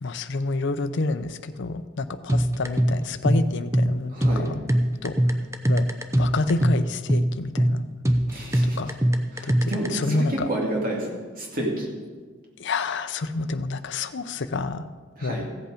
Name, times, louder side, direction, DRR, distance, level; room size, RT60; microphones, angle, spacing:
voice 1, 0.0-4.6 5.0-5.1 5.7-5.9 6.2-7.8 8.6-9.0 9.4-10.5 12.6-14.9 15.2-15.5, left 3 dB, 65° left, 10 dB, 0.6 m, -28 dB
sound 1, 2.3-9.9, equal, 15° right, 0.7 m, -22 dB
voice 2, 4.1-4.5 8.3-8.8 9.3-11.9 15.2-15.5, right 1 dB, 45° right, -1 dB, 2.3 m, -30 dB
15.0 x 8.1 x 5.1 m, 1.5 s
head